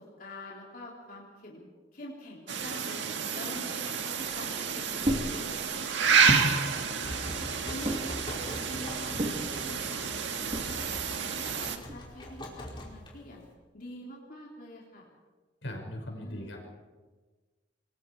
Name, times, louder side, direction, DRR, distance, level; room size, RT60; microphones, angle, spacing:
voice 1, 0.0-1.7 1.9-3.0 3.3-5.6 6.0-7.2 7.6-10.9 11.2-13.4 13.7-15.1 16.1-16.6, left 1 dB, 50° left, -3 dB, 3.7 m, -46 dB
sound 1, 2.5-11.8, right 6 dB, 85° right, 1.8 m, -30 dB
sound 2, 4.2-12.5, right 1 dB, 35° right, 2.6 m, -36 dB
sound 3, 6.7-13.5, equal, 25° left, 5.0 m, -43 dB
voice 2, 15.6-16.7, left 1 dB, 90° left, 1 dB, 5.9 m, -39 dB
28.0 x 21.0 x 4.8 m, 1.3 s
head